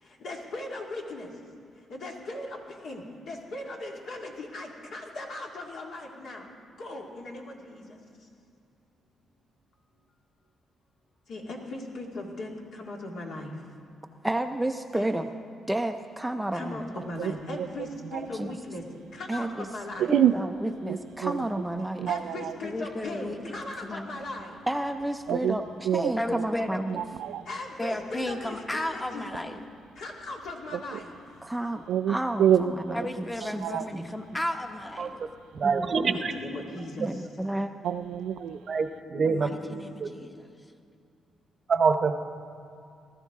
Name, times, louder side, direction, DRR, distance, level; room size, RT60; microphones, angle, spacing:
voice 1, 0.0-1.3 1.9-6.5 6.8-8.0 11.3-13.6 14.9-15.1 16.5-18.8 19.1-20.2 22.1-24.6 27.5-29.3 30.0-31.2 35.8-37.3, left 2 dB, 65° left, 0 dB, 2.2 m, -38 dB
voice 2, 14.2-15.3 15.7-16.9 18.3-18.5 19.3-19.7 20.1-22.1 24.7-27.0 31.4-33.7 33.9-34.2 35.6-36.2 37.0-37.7, right 1 dB, 5° right, 6 dB, 0.5 m, -31 dB
voice 3, 17.2-17.7 18.1-18.2 20.0-20.3 20.9-21.4 22.0-22.5 25.3-25.6 25.8-26.4 26.9-27.4 31.9-33.0 33.6-33.9 37.8-38.6, right 10 dB, 80° right, 12 dB, 0.4 m, -26 dB
voice 4, 22.6-24.2 26.1-26.8 27.8-29.6 32.9-35.2 39.2-40.5, left 1 dB, 15° left, 5 dB, 1.0 m, -34 dB
voice 5, 35.0-35.3 35.5-36.3 38.7-40.1 41.7-42.2, right 5 dB, 45° right, 8 dB, 0.8 m, -26 dB
19.0 x 13.5 x 3.7 m, 2.4 s
cardioid pair, 110°, 0 cm